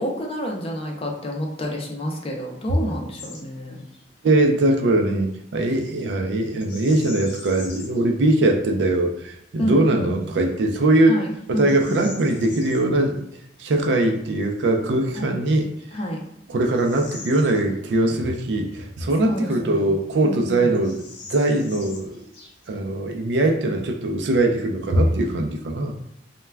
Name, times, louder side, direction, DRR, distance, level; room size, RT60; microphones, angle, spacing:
voice 1, 0.0-3.8 9.6-10.2 11.1-12.0 15.2-15.4 15.9-16.2 19.2-19.9 20.2-20.7, equal, 35° left, 1 dB, 0.4 m, -28 dB
Bird vocalization bird call bird song, 3.1-3.4 3.8-4.0 6.6-8.1 8.6-8.7 9.3-9.7 10.3-10.4 10.9-12.8 15.0-15.1 15.7-18.1 18.5-18.6 19.3-20.1 20.3-20.4 20.7-22.8, left 3 dB, 80° left, 0.7 m, -43 dB
voice 2, 4.2-11.2 11.5-13.2 13.6-15.7 16.5-21.0 21.3-22.3 22.7-26.0, right 2 dB, 70° right, 4 dB, 0.4 m, -21 dB
2.2 x 2.2 x 3.3 m, 0.74 s
head